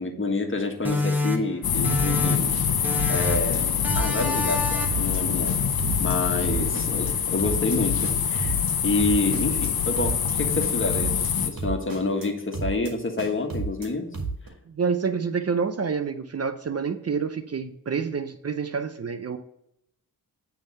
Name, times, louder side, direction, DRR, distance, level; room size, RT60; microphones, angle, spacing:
voice 1, 0.0-5.6 6.0-14.1, left 3 dB, 35° left, 4 dB, 1.5 m, -28 dB
sound 1, 0.8-2.6 2.8-3.5 3.8-5.1, left 2 dB, 5° right, 1.1 m, -28 dB
sound 2, 1.6-11.5, left 7 dB, 80° left, 0.9 m, -25 dB
sound 3, 3.2-3.6 3.8-4.5 4.8-5.2 5.5-6.2 6.4-7.1 7.4-7.8 8.0-8.7 9.0-9.7 10.0-10.3 10.6-11.3 11.6-12.3 12.5-12.9 13.2-13.9 14.1-14.5, right 4 dB, 60° right, 1.9 m, -32 dB
voice 2, 14.7-19.4, right 5 dB, 40° right, 9 dB, 0.7 m, -28 dB
8.8 x 3.6 x 6.5 m, 0.75 s
cardioid pair, 65°, 36 cm